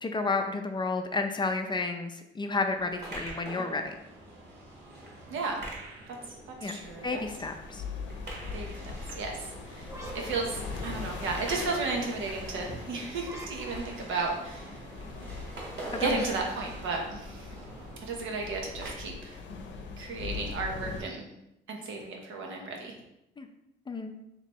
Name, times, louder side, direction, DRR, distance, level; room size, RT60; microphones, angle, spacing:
voice 1, 0.0-3.8 6.6-7.8 15.9-16.2 23.4-23.5 23.9-24.1, left 3 dB, 25° left, 6 dB, 0.4 m, -31 dB
sound 1, 2.7-18.9, right 2 dB, 55° right, 1.3 m, -45 dB
voice 2, 5.3-5.6 6.6-7.2 8.5-8.8 9.1-14.8 16.0-17.5 18.0-19.4 20.0-21.3 21.7-23.0, right 3 dB, 80° right, 1 dB, 0.9 m, -34 dB
sound 2, 6.8-21.0, left 4 dB, 70° left, 0.7 m, -42 dB
sound 3, 9.8-11.3 13.2-14.3 16.1-17.9, right 2 dB, 15° right, 0.8 m, -47 dB
3.0 x 2.9 x 4.4 m, 0.88 s
cardioid pair, 90°, 20 cm